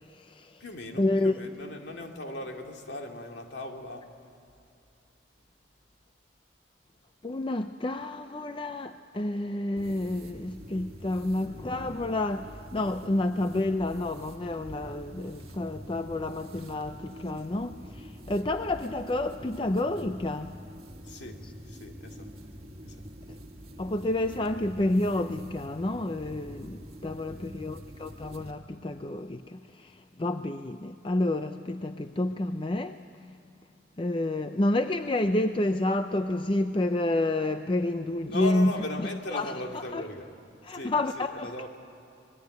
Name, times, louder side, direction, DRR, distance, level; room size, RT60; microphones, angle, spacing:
voice 1, 0.0-0.6 1.0-1.3 7.2-20.5 23.8-33.0 34.0-38.7 39.3-39.5 39.9-40.0 40.6-41.5, left 2 dB, 25° left, 8 dB, 0.5 m, -29 dB
voice 2, 0.6-4.1 21.0-22.3 22.8-23.0 38.2-40.3 40.7-41.7, left 1 dB, 60° left, 2 dB, 2.6 m, -38 dB
sound 1, 9.8-28.5, equal, 30° right, 2.0 m, -45 dB
25.5 x 21.5 x 9.4 m, 2.6 s
head